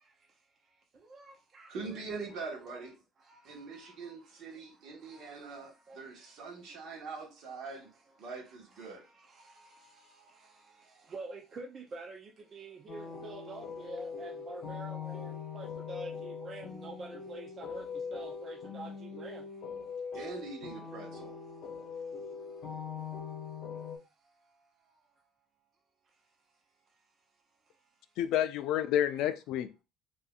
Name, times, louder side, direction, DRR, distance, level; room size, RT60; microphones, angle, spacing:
voice 1, 0.0-1.7 2.3-2.4 2.7-2.8 3.2-6.8 7.7-7.8 8.2-20.1 21.5-25.2 26.0-27.4 27.6-28.2 28.9-29.2, right 3 dB, 25° right, 0.5 m, -50 dB
voice 2, 1.7-3.0 3.4-7.9 8.2-9.0 20.1-21.4, right 4 dB, 50° right, 1.3 m, -43 dB
sound 1, 12.9-24.0, left 6 dB, 45° left, 0.9 m, -42 dB
voice 3, 28.2-29.8, left 11 dB, 60° left, 0.4 m, -29 dB
4.1 x 2.7 x 2.3 m
cardioid pair, 175°, 0 cm